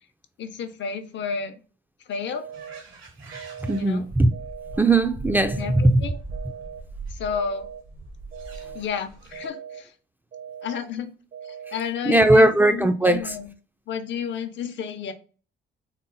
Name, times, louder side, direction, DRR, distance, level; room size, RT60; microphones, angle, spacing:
voice 1, 0.4-1.6 2.1-2.5 3.7-4.1 5.6-6.2 7.1-7.7 8.7-9.9 10.6-11.1 11.4-13.5 13.9-15.1, left 6 dB, 65° left, 0.7 m, -31 dB
sound 1, 2.3-2.8 3.3-3.8 4.3-4.8 5.3-5.8 6.3-6.8 7.3-7.8 8.3-8.8 9.3-9.8 10.3-10.8 11.3-11.8, right 8 dB, 60° right, 0.8 m, -40 dB
sound 2, 2.5-9.5, right 3 dB, 80° right, 1.2 m, -41 dB
voice 2, 3.6-4.3 4.8-6.0 12.1-13.2, right 2 dB, 10° right, 0.4 m, -18 dB
4.0 x 2.0 x 3.8 m
cardioid pair, 90°, 20 cm